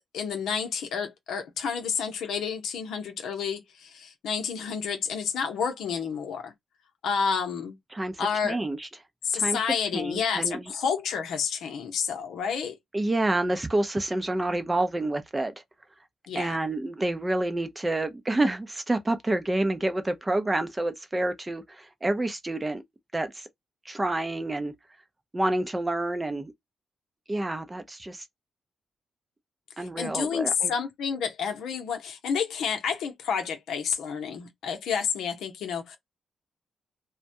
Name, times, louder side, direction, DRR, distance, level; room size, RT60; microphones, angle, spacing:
voice 1, 0.1-6.5 7.0-7.8 8.2-8.6 9.2-12.8 16.3-16.6 29.8-36.0, left 6 dB, 85° left, 0.7 m, -30 dB
voice 2, 7.9-8.9 9.3-9.6 9.9-10.7 12.9-15.5 16.3-22.8 23.1-23.5 23.9-24.7 25.3-26.5 27.3-28.2 29.8-30.7, right 2 dB, 20° right, 0.5 m, -28 dB
2.2 x 2.1 x 2.6 m
cardioid pair, 70°, 0 cm